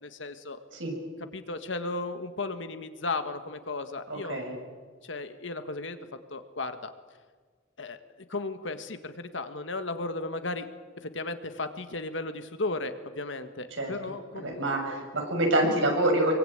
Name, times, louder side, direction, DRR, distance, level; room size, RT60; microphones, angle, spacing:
voice 1, 0.0-0.6 1.3-4.3 5.0-6.0 6.3-6.9 7.8-8.0 8.3-10.7 11.0-15.0, left 3 dB, 70° left, 9 dB, 1.7 m, -35 dB
voice 2, 4.1-4.5 13.8-13.9 14.4-16.3, right 1 dB, 75° right, 2 dB, 6.7 m, -26 dB
24.5 x 23.5 x 8.9 m, 1.5 s
head